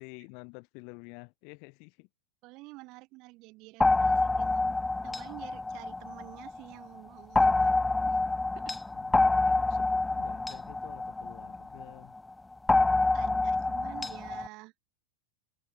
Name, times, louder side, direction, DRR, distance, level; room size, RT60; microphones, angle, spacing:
voice 1, 0.0-2.1 4.4-4.7 8.9-12.1, left 36 dB, 45° left, 5.0 m, -50 dB
voice 2, 2.4-4.8 5.0-8.2 8.6-8.7 13.1-14.7, right 23 dB, 40° right, 3.9 m, -49 dB
sound 1, 3.8-6.6 7.4-11.9 12.7-14.5, left 2 dB, 10° left, 0.3 m, -27 dB
figure-of-eight pair, 90°, 0 cm